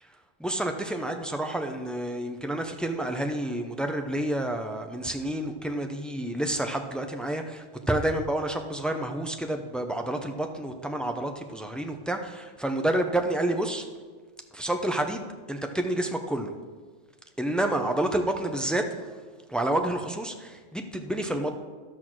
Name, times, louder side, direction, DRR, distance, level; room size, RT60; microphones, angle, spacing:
voice 1, 0.0-13.9 14.5-16.5 17.4-19.2 19.5-21.6, right 1 dB, ahead, 5 dB, 0.3 m, -29 dB
12.0 x 6.3 x 6.1 m, 1.4 s
omnidirectional pair, 1.3 m